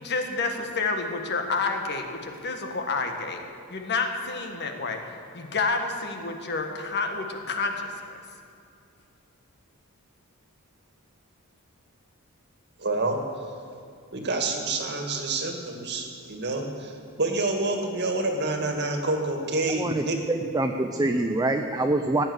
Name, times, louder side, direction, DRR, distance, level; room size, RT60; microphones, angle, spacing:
voice 1, 0.0-3.4 3.7-5.0 5.3-7.9, left 4 dB, 50° left, 4 dB, 1.5 m, -29 dB
voice 2, 12.8-13.2 14.1-20.2, right 2 dB, 50° right, 3 dB, 2.0 m, -28 dB
voice 3, 19.8-22.2, right 2 dB, 15° right, 5 dB, 0.6 m, -25 dB
15.5 x 9.5 x 8.0 m, 2.5 s
head